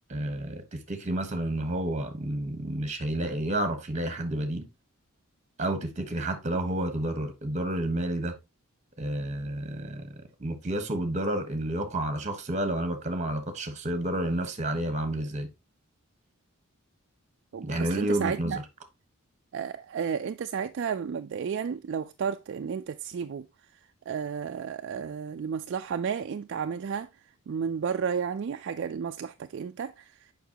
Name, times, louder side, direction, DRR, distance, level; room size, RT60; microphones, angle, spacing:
voice 1, 0.1-4.7 5.6-8.4 9.0-10.1 10.4-15.5 17.6-18.5, right 1 dB, 35° right, 1.2 m, -30 dB
voice 2, 17.5-18.6 19.5-23.5 23.7-23.8 24.1-27.1 27.5-30.3, right 7 dB, 55° right, 0.3 m, -32 dB
7.0 x 5.4 x 2.9 m
head